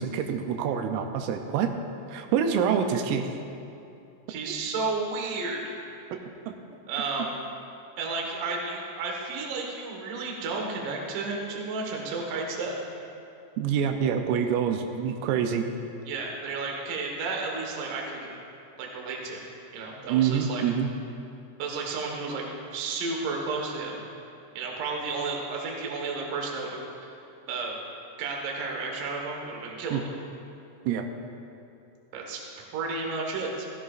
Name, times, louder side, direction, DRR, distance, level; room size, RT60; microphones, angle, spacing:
voice 1, 0.0-1.7 2.1-3.3 6.5-6.6 13.6-15.6 20.1-20.9 29.9-30.0 30.9-31.1, right 7 dB, 85° right, 5 dB, 3.2 m, -26 dB
voice 2, 4.3-5.7 6.9-7.3 8.0-12.8 16.1-18.3 18.8-19.4 19.7-20.6 21.6-22.4 22.7-24.1 24.6-27.1 27.5-27.7 28.2-30.1 32.1-32.4 32.7-33.6, right 3 dB, 65° right, 0 dB, 2.1 m, -32 dB
15.5 x 15.0 x 2.5 m, 2.7 s
omnidirectional pair, 5.9 m